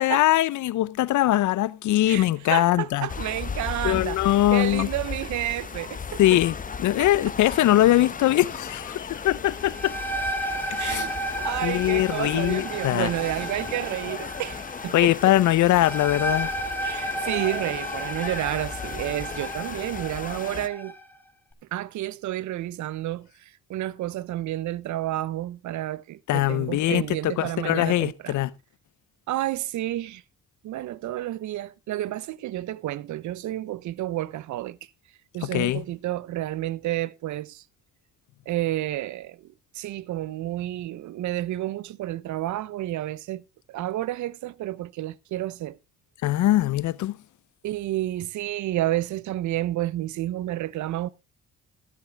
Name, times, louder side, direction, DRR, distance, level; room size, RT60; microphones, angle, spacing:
voice 1, 0.0-3.1 3.8-4.9 6.2-6.5 6.8-9.9 10.7-11.1 11.6-13.1 14.9-16.5 26.3-28.5 35.4-35.8 46.2-47.2, left 14 dB, 75° left, 0.7 m, -22 dB
voice 2, 2.1-6.4 7.0-7.1 10.8-15.3 16.8-20.9 21.7-23.3 23.7-28.4 29.3-30.2 30.6-34.8 35.3-37.6 38.5-39.5 39.7-45.8 47.6-51.1, right 14 dB, 70° right, 0.7 m, -30 dB
sound 1, 3.1-20.7, left 5 dB, 25° left, 0.8 m, -36 dB
sound 2, 9.5-21.0, right 1 dB, 5° left, 2.0 m, -33 dB
13.0 x 11.0 x 3.4 m
cardioid pair, 90°, 30 cm